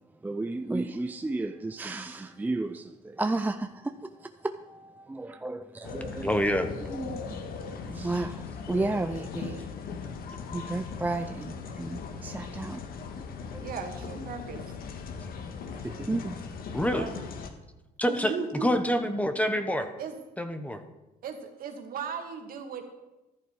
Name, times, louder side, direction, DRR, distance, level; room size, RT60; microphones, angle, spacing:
voice 1, 0.2-6.3 6.9-9.7 10.5-12.8 13.4-13.6 15.8-16.4, right 2 dB, 10° right, 7 dB, 0.5 m, -33 dB
sound 1, 5.8-17.5, left 5 dB, 60° left, 1.6 m, -39 dB
voice 2, 6.2-6.7 16.7-17.1 18.0-18.3 18.6-19.9 20.4-20.8, equal, 10° left, 8 dB, 1.1 m, -26 dB
voice 3, 13.6-14.6 16.9-17.1 18.1-18.7 20.0-20.1 21.2-22.8, right 6 dB, 60° right, 4 dB, 2.1 m, -36 dB
14.0 x 11.5 x 4.8 m, 1.0 s
cardioid pair, 110°, 17 cm